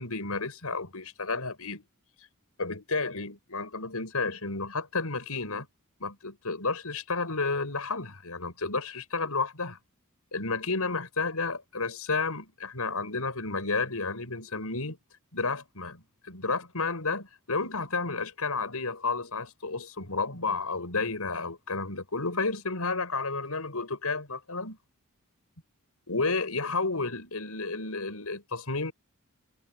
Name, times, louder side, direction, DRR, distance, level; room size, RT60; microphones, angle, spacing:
voice 1, 0.0-1.8 2.6-5.7 6.0-9.8 10.3-15.0 15.3-24.8 26.1-28.9, left 3 dB, 80° left, 5.8 m, -31 dB
head